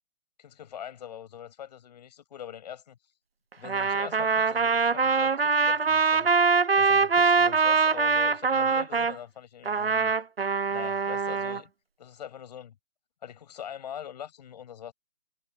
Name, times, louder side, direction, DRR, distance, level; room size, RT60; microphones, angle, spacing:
voice 1, 0.4-3.0 3.6-6.3 6.8-10.1 10.7-11.7 12.0-12.8 13.2-14.9, left 9 dB, 45° left, 7.7 m, -43 dB
Trumpet, 3.6-9.2 9.7-11.6, right 5 dB, 70° right, 1.2 m, -23 dB
figure-of-eight pair, 135°, 31 cm